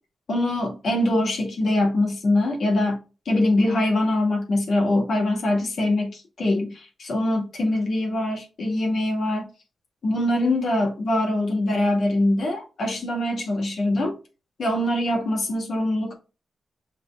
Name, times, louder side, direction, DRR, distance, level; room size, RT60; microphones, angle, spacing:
voice 1, 0.3-9.5 10.0-14.2 14.6-16.1, left 1 dB, 60° left, 1.8 m, -23 dB
5.6 x 3.5 x 2.4 m
wide cardioid pair, 135°, 0 cm